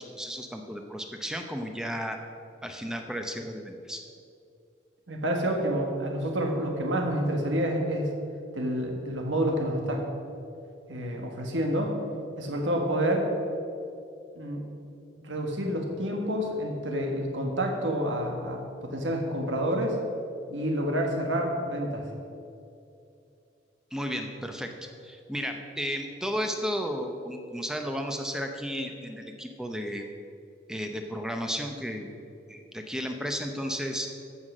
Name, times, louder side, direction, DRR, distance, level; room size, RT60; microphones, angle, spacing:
voice 1, 0.0-2.2 2.6-4.0 23.9-30.1 30.7-32.1 32.5-34.1, equal, 5° right, 4 dB, 0.7 m, -33 dB
voice 2, 5.1-8.1 8.5-10.0 10.9-12.0 12.4-13.3 14.3-14.6 15.2-20.0 20.5-22.1, equal, 90° right, 2 dB, 1.6 m, -28 dB
14.0 x 5.8 x 6.2 m, 2.6 s
head